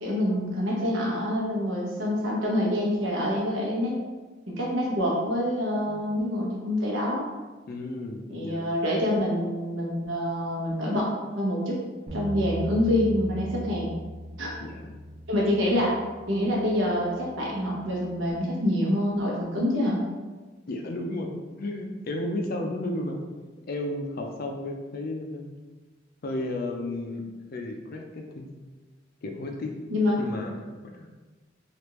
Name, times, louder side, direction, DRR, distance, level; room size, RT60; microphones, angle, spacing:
voice 1, 0.0-4.0 4.5-7.3 8.3-11.1 11.3-11.8 12.1-13.9 14.4-14.5 15.3-16.0 16.3-20.0 29.9-30.2, left 1 dB, 75° right, -4 dB, 0.9 m, -26 dB
voice 2, 7.7-8.7 14.5-15.0 20.7-23.2 23.7-25.5 26.2-28.5 29.2-29.8 30.2-31.0, left 1 dB, 50° left, 2 dB, 0.4 m, -33 dB
Bass guitar, 12.1-18.3, right 1 dB, 45° right, 0.5 m, -39 dB
3.3 x 2.5 x 3.0 m, 1.3 s
head